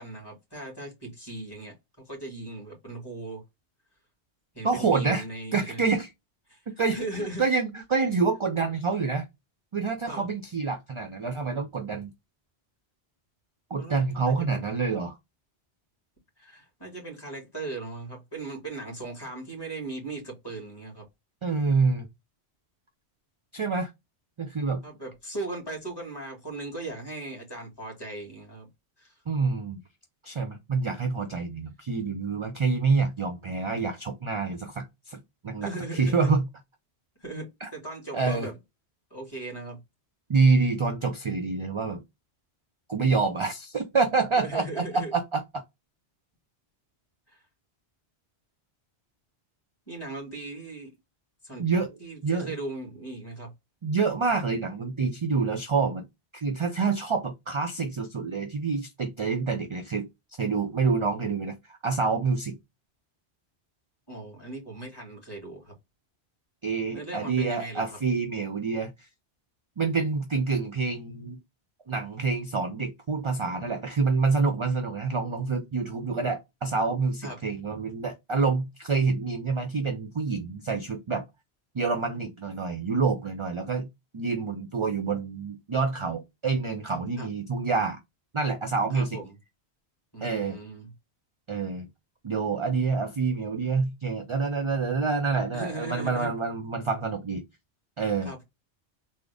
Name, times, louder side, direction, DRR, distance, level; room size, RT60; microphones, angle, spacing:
voice 1, 0.0-3.4 4.5-5.9 6.5-6.6 6.9-7.4 10.1-10.3 13.8-14.6 16.4-21.0 24.8-28.7 29.0-29.1 35.6-36.3 37.2-38.6 39.1-39.8 44.4-45.1 47.3-47.4 49.9-50.9 51.4-51.7 52.0-53.5 64.1-65.7 66.9-67.8 77.2-77.4 87.2-87.3 88.9-89.3 90.1-90.9 95.5-96.3 98.2-98.4, right 2 dB, 20° left, 2.0 m, -38 dB
voice 2, 4.6-5.2 5.5-6.1 6.7-9.3 9.7-12.1 13.7-15.2 21.4-22.1 23.5-23.9 24.4-24.8 29.3-29.8 30.2-36.4 37.6-37.7 38.1-38.5 40.3-42.0 42.9-44.8 45.1-45.6 51.6-51.9 52.2-52.5 53.8-56.1 56.3-60.1 60.4-62.6 66.6-68.9 69.8-71.4 71.9-81.2 81.7-83.9 84.1-88.0 88.3-89.2 90.2-90.6 91.5-91.9 92.2-97.4 98.0-98.3, right 4 dB, 45° right, 0.4 m, -27 dB
3.8 x 2.0 x 3.4 m
omnidirectional pair, 1.1 m